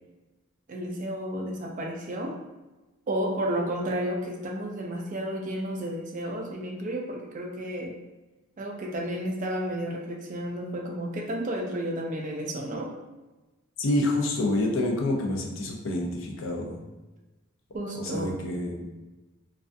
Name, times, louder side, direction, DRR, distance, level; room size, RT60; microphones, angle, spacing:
voice 1, 0.7-2.4 3.1-8.0 8.6-12.9 17.7-18.4, right 1 dB, 35° right, 0 dB, 0.3 m, -32 dB
voice 2, 13.8-16.8 17.9-18.9, left 1 dB, 60° left, 1 dB, 0.4 m, -28 dB
2.4 x 2.2 x 2.5 m, 1.1 s
head